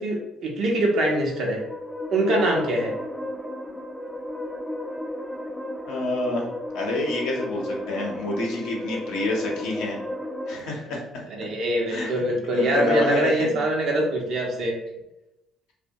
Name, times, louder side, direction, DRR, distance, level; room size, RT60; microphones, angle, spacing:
voice 1, 0.0-1.6 2.1-2.9 11.3-14.7, right 1 dB, 55° right, 0 dB, 0.6 m, -23 dB
sound 1, 1.3-10.6, left 1 dB, 5° left, 0.4 m, -34 dB
voice 2, 5.9-6.5 6.7-10.0 10.5-11.0 11.9-12.2 12.5-13.6, left 2 dB, 65° left, -1 dB, 0.6 m, -27 dB
2.7 x 2.1 x 2.6 m, 0.92 s
figure-of-eight pair, 50°, 0 cm